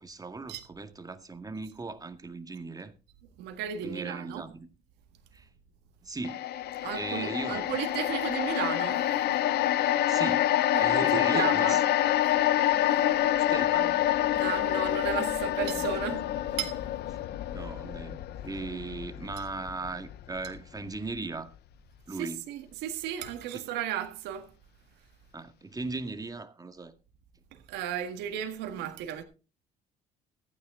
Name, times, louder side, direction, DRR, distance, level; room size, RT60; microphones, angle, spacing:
voice 1, 0.0-2.9 3.8-4.7 5.3-5.5 6.0-6.4 6.9-7.7 10.1-10.5 10.7-11.8 13.5-14.0 15.8-15.9 17.5-21.5 22.1-22.4 23.5-23.7 25.3-26.9, right 3 dB, 20° right, 1.9 m, -38 dB
voice 2, 3.4-4.4 6.8-9.0 9.3-9.4 10.7-11.8 14.4-16.3 16.6-16.8 22.2-24.5 27.5-29.2, right 10 dB, 85° right, 1.8 m, -34 dB
sound 1, 6.2-20.6 20.9-21.1, left 13 dB, 75° left, 0.7 m, -27 dB
15.0 x 9.4 x 3.8 m
supercardioid pair, 70°, 17 cm